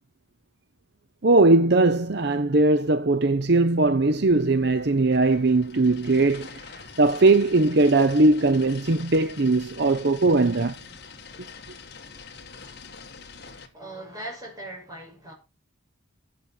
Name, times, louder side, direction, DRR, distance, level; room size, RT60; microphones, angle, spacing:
voice 1, 1.2-6.6 7.0-10.8, right 2 dB, 50° right, 0.7 m, -20 dB
sound 1, 4.0-13.7, left 5 dB, 50° left, 2.0 m, -45 dB
voice 2, 13.7-15.3, right 1 dB, 15° right, 6.4 m, -39 dB
15.5 x 8.4 x 4.5 m
head